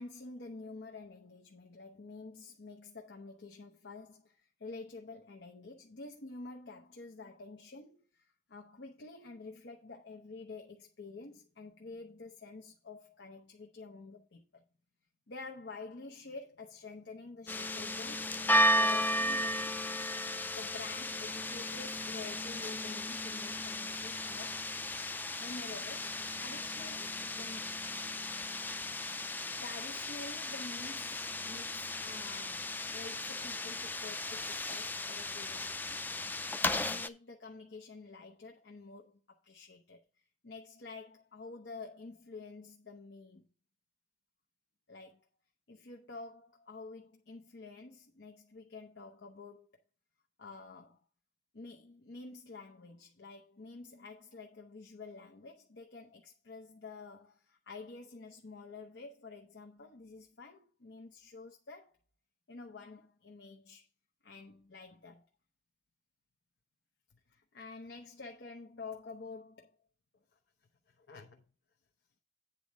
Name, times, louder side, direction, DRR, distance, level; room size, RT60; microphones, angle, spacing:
voice 1, 0.0-14.6 15.3-24.7 25.4-27.8 29.4-40.0 40.4-43.5 44.9-45.3 45.7-49.7 50.4-51.0 51.5-61.9 62.5-63.8 64.2-65.3 67.3-69.7 71.0-71.4, left 3 dB, 75° left, 0.9 m, -49 dB
sound 1, 17.5-37.1, left 1 dB, 10° left, 0.3 m, -35 dB
9.0 x 4.2 x 6.3 m
head